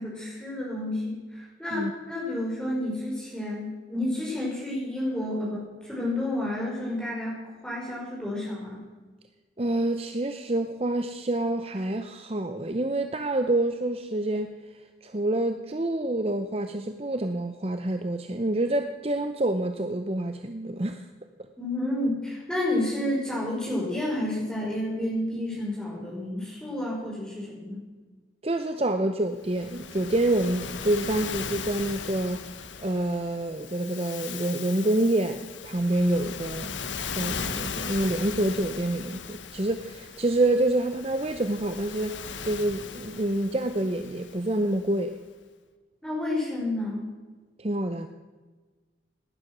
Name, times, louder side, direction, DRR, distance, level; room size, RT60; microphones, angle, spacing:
voice 1, 0.0-8.8 21.6-27.8 46.0-47.0, left 1 dB, 5° left, -5 dB, 5.6 m, -30 dB
voice 2, 9.6-14.5 15.0-21.0 28.4-32.4 32.8-36.8 37.1-42.2 42.4-45.1 47.6-48.1, right 1 dB, 30° right, 7 dB, 0.7 m, -27 dB
Waves surf, 29.4-44.9, left 6 dB, 85° left, 1.1 m, -38 dB
18.0 x 11.0 x 6.1 m, 1.3 s
head